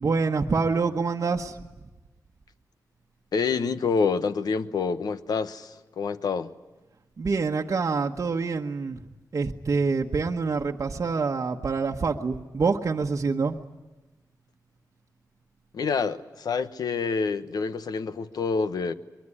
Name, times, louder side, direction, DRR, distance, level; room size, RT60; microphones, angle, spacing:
voice 1, 0.0-1.6 7.2-9.0 9.3-13.6, right 4 dB, 50° right, 1.1 m, -26 dB
voice 2, 3.3-6.5 15.7-18.9, left 5 dB, 75° left, 1.1 m, -27 dB
23.5 x 22.0 x 9.9 m
wide cardioid pair, 90°, 7 cm